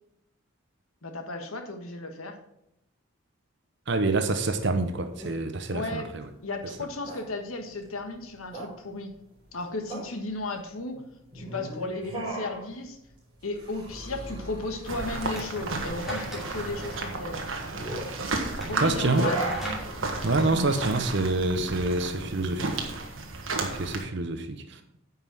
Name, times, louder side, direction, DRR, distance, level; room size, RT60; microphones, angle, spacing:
voice 1, 1.0-2.4 5.7-6.1 6.4-9.1 9.5-10.9 11.3-13.0 13.4-17.5 18.6-19.6 20.2-20.8, left 2 dB, 85° left, 5 dB, 1.4 m, -35 dB
sound 1, 3.9-23.2, right 2 dB, 25° right, 4.3 m, -39 dB
voice 2, 3.9-6.3 18.8-19.3 20.2-22.9 23.6-24.8, right 2 dB, 55° right, 8 dB, 0.7 m, -27 dB
sound 2, 14.9-24.0, right 3 dB, 70° right, 1.5 m, -33 dB
sound 3, 15.3-23.8, right 1 dB, ahead, 2.5 m, -41 dB
9.6 x 5.5 x 6.0 m, 0.80 s
head